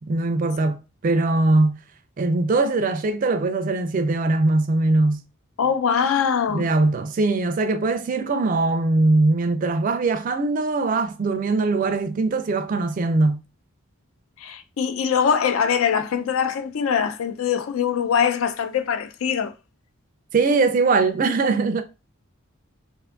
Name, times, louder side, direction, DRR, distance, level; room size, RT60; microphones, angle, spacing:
voice 1, 0.0-1.8 2.2-5.2 6.5-13.4 20.3-21.8, right 3 dB, 40° right, 0.3 m, -21 dB
voice 2, 5.6-6.7 14.4-19.5, left 7 dB, 75° left, 0.4 m, -22 dB
2.5 x 2.5 x 3.4 m
head